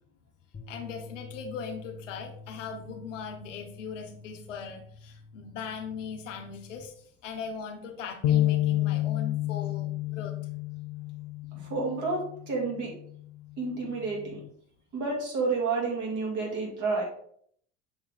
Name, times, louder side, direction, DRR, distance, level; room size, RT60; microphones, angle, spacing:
sound 1, 0.5-6.8, left 3 dB, 30° left, 1.1 m, -48 dB
voice 1, 0.7-6.9 7.2-10.3 11.5-11.7, left 6 dB, 85° left, 2 dB, 0.8 m, -39 dB
sound 2, 8.2-12.5 13.0-13.2 14.0-14.5, left 14 dB, 50° left, 0.6 m, -29 dB
voice 2, 11.6-13.0 13.6-14.4 14.9-17.0, right 4 dB, 55° right, -2 dB, 2.7 m, -30 dB
7.1 x 3.5 x 3.8 m, 0.64 s
hypercardioid pair, 75°, 36 cm